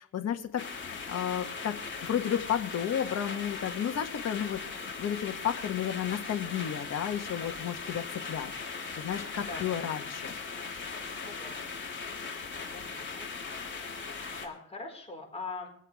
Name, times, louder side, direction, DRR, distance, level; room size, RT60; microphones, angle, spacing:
voice 1, 0.0-1.8 2.0-4.6 5.0-10.3, left 9 dB, 55° left, 5 dB, 1.3 m, -32 dB
sound 1, 0.6-14.5, left 5 dB, 40° left, 3.2 m, -39 dB
voice 2, 9.4-9.7 11.2-11.8 12.7-13.3 14.4-15.7, left 3 dB, 20° left, 0 dB, 4.8 m, -42 dB
24.0 x 8.3 x 3.5 m, 0.69 s
cardioid pair, 90°, 30 cm